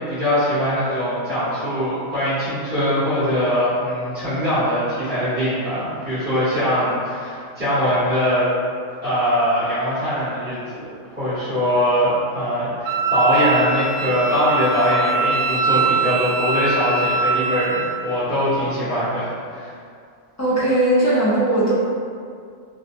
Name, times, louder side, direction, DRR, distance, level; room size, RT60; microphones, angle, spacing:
voice 1, 0.0-8.5 9.0-19.7, equal, 30° right, -16 dB, 1.1 m, -22 dB
Wind instrument woodwind instrument, 12.8-18.0, right 3 dB, 75° right, 0.9 m, -22 dB
voice 2, 20.4-21.7, right 1 dB, 20° left, -10 dB, 0.4 m, -18 dB
2.7 x 2.3 x 2.6 m, 2.2 s
omnidirectional pair, 1.3 m